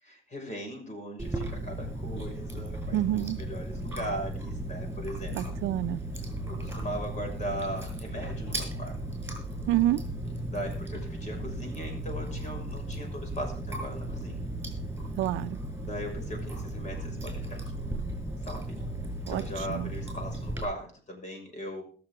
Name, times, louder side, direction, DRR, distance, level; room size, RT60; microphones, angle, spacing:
voice 1, 0.0-5.6 6.4-8.9 10.5-14.4 15.8-17.7 18.4-18.8 19.3-21.8, equal, 35° left, 6.4 m, -39 dB
Chewing mastication, 1.2-20.6, right 1 dB, 10° right, 5.8 m, -36 dB
voice 2, 2.9-3.4 5.4-6.0 9.7-10.0 15.2-15.6 19.3-19.4 19.7-19.9, right 14 dB, 75° right, 0.7 m, -27 dB
21.0 x 7.2 x 3.8 m
cardioid pair, 95°, 20 cm